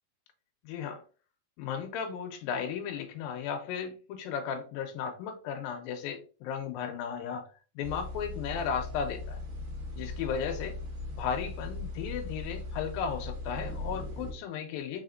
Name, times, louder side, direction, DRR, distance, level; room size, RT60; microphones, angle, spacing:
voice 1, 0.6-1.0 1.6-7.5 7.8-9.4 10.0-10.8 11.1-15.0, left 7 dB, 90° left, 2.4 m, -35 dB
sound 1, 7.8-14.3, left 2 dB, 55° right, 1.4 m, -39 dB
4.9 x 4.2 x 2.6 m
omnidirectional pair, 4.2 m